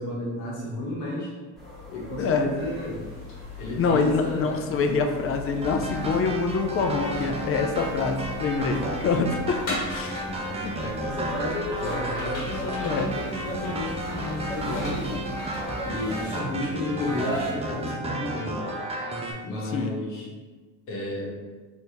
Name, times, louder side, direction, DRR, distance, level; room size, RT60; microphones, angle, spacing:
voice 1, 0.0-1.3 1.9-3.0 3.6-4.7 10.8-15.3 15.8-18.8 19.4-20.3 20.9-21.4, left 1 dB, 75° left, -4 dB, 1.1 m, -32 dB
sound 1, 1.6-16.2, left 3 dB, ahead, 1.4 m, -41 dB
voice 2, 2.2-2.5 3.8-10.2 10.6-10.7 12.8-13.1 19.7-19.9, left 4 dB, 35° left, 5 dB, 0.4 m, -25 dB
sound 2, 2.6-18.0, equal, 60° left, 1.3 m, -40 dB
sound 3, 5.6-19.3, right 1 dB, 15° right, 0.5 m, -33 dB
2.8 x 2.8 x 3.4 m, 1.3 s
supercardioid pair, 85°, 37 cm